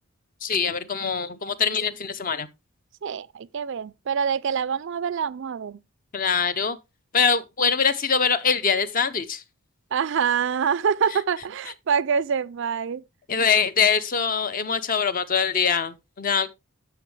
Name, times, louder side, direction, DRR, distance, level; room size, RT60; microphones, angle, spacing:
voice 1, 0.4-2.5 6.1-6.8 7.1-9.4 13.3-16.5, left 6 dB, 40° left, 0.6 m, -23 dB
voice 2, 3.0-5.8 9.9-13.0, right 7 dB, 55° right, 0.4 m, -25 dB
9.9 x 7.0 x 3.2 m
head